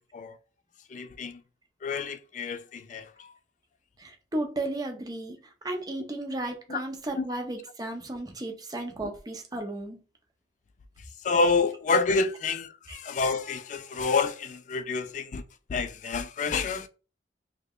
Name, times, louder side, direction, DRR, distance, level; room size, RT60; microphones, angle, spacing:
voice 1, 0.9-1.4 1.8-3.3 6.7-6.8 7.2-7.3 11.2-15.4 15.7-16.9, left 4 dB, 40° left, 0.3 m, -28 dB
voice 2, 4.0-10.0 12.9-13.0, right 1 dB, 20° right, 0.6 m, -34 dB
3.2 x 2.2 x 3.6 m
head